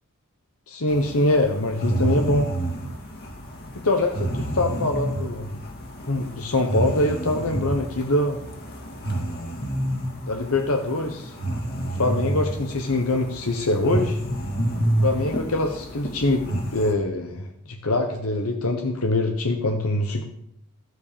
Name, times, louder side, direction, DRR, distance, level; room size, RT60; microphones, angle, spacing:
voice 1, 0.7-2.5 3.7-5.6 6.1-8.4 10.2-11.3 11.9-14.2 15.0-20.2, left 2 dB, 65° left, 4 dB, 1.2 m, -24 dB
sound 1, 0.9-16.9, right 1 dB, 45° left, 2.6 m, -29 dB
13.0 x 8.2 x 6.9 m, 0.74 s
head